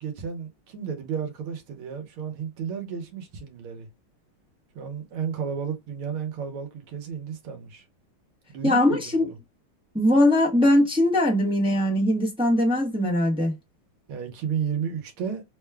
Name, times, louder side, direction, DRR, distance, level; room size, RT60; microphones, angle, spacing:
voice 1, 0.0-3.9 4.8-7.9 8.5-9.4 14.1-15.4, right 7 dB, 80° right, 1.8 m, -32 dB
voice 2, 8.6-9.3 9.9-13.5, left 1 dB, 5° right, 0.6 m, -21 dB
4.1 x 2.3 x 3.3 m
omnidirectional pair, 2.3 m